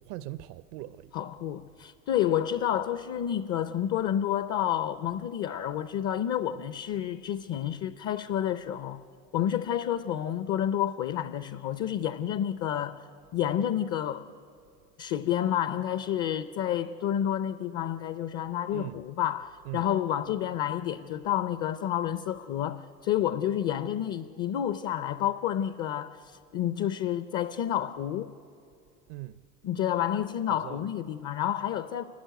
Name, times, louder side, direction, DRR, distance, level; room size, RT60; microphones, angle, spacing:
voice 1, 0.0-1.1 18.7-19.0 19.6-19.9 29.1-29.4 30.5-30.9, right 15 dB, 70° right, 0.6 m, -40 dB
voice 2, 1.1-9.0 9.3-13.0 13.3-14.3 15.0-28.3 29.6-32.0, left 10 dB, 45° left, 0.6 m, -29 dB
28.0 x 12.5 x 9.2 m
supercardioid pair, 105°, 35 cm